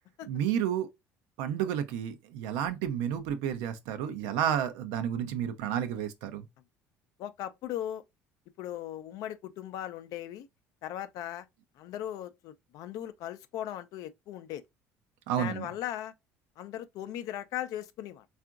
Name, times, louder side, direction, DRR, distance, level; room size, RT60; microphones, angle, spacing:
voice 1, 0.3-0.9 1.4-6.4 15.3-15.7, right 9 dB, 75° right, 0.5 m, -31 dB
voice 2, 7.2-8.0 8.6-10.5 10.8-11.5 11.8-14.6 15.4-16.1 16.6-18.3, left 11 dB, 65° left, 0.4 m, -38 dB
3.6 x 2.4 x 2.4 m
hypercardioid pair, 70°, 7 cm